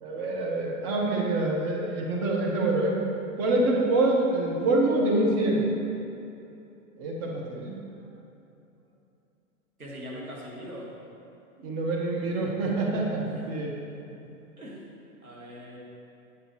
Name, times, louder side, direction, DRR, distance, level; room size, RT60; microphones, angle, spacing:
voice 1, 0.0-3.0 3.4-5.7 7.0-7.7 11.6-13.7, right 2 dB, 35° right, -1 dB, 1.3 m, -26 dB
voice 2, 9.8-10.9 13.3-13.5 14.6-14.8 15.2-15.8, equal, 90° right, -4 dB, 1.7 m, -41 dB
8.9 x 6.8 x 3.1 m, 2.8 s
figure-of-eight pair, 100°, 42 cm